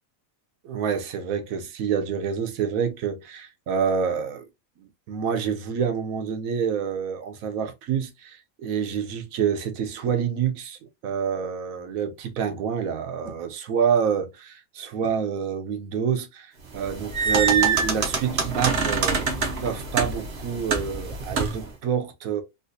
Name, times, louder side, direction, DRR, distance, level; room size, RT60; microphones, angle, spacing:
voice 1, 0.6-4.5 4.8-22.4, right 7 dB, 80° right, 1.1 m, -27 dB
sound 1, 16.7-21.7, right 5 dB, 55° right, 1.0 m, -25 dB
3.8 x 2.5 x 2.5 m
omnidirectional pair, 1.5 m